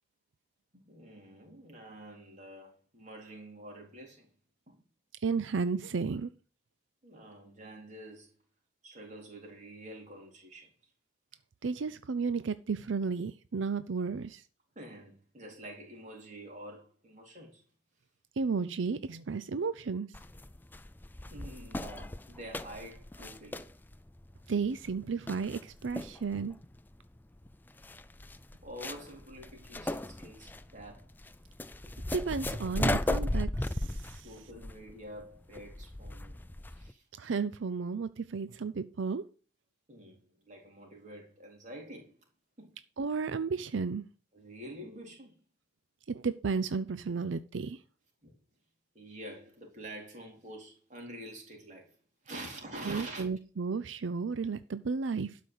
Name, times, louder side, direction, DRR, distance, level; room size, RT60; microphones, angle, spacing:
voice 1, 0.7-4.3 4.7-4.8 7.0-8.3 8.8-10.7 14.8-17.6 21.3-23.7 28.6-31.1 34.2-36.4 36.7-37.1 39.9-42.1 42.6-42.8 44.3-45.4 48.2-48.3 48.9-52.0 52.2-53.3, right 1 dB, 40° right, 3.9 m, -47 dB
voice 2, 5.2-6.3 11.6-14.5 18.4-20.1 24.5-26.5 32.1-34.3 37.2-39.3 43.0-44.0 46.1-47.8 52.9-55.4, right 5 dB, 85° right, 0.5 m, -33 dB
sound 1, 20.1-36.9, left 1 dB, 10° left, 0.4 m, -37 dB
12.0 x 5.2 x 8.0 m
head